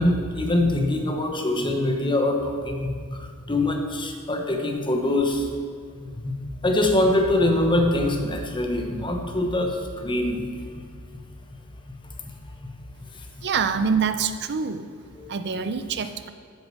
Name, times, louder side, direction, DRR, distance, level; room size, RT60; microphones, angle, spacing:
voice 1, 0.0-5.5 5.9-10.8 13.1-13.2 15.2-15.3, left 1 dB, 20° left, 3 dB, 1.0 m, -24 dB
voice 2, 13.4-14.9 15.3-16.3, right 6 dB, 50° right, 11 dB, 0.6 m, -25 dB
9.1 x 6.6 x 7.5 m, 2.1 s
head